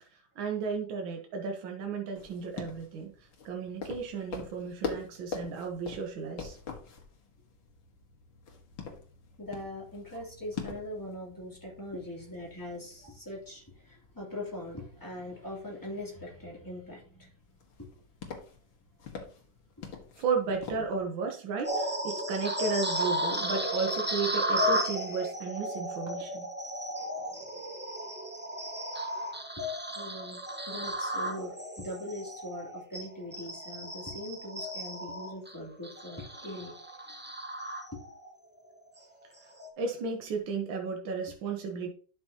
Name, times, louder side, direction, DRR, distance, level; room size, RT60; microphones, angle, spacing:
voice 1, 0.1-6.6 20.2-26.5 31.4-31.5 39.8-41.9, right 5 dB, 75° right, 2 dB, 1.8 m, -34 dB
sound 1, 2.1-20.9, left 5 dB, 75° left, 2.3 m, -45 dB
voice 2, 9.4-17.3 17.8-17.9 19.8-19.9 27.2-27.6 29.6-36.7 37.1-37.2 37.9-38.0, left 1 dB, 10° left, -3 dB, 2.9 m, -41 dB
sound 2, 21.6-38.3 38.8-39.0 39.5-39.7, equal, 10° right, 0.6 m, -34 dB
11.5 x 6.1 x 2.9 m, 0.42 s
omnidirectional pair, 2.2 m